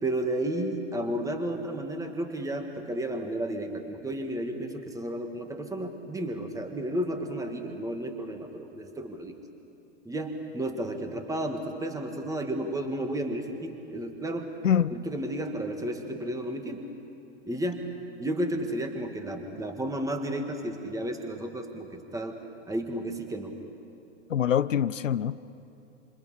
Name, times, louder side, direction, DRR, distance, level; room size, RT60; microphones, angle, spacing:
voice 1, 0.0-9.4 10.1-14.5 14.9-16.9 17.5-17.9 18.2-22.4 22.7-23.5, right 1 dB, 10° right, 2.1 m, -32 dB
voice 2, 14.6-15.0 24.3-25.4, left 9 dB, 80° left, 0.6 m, -25 dB
27.0 x 27.0 x 5.1 m
figure-of-eight pair, 100°, 37 cm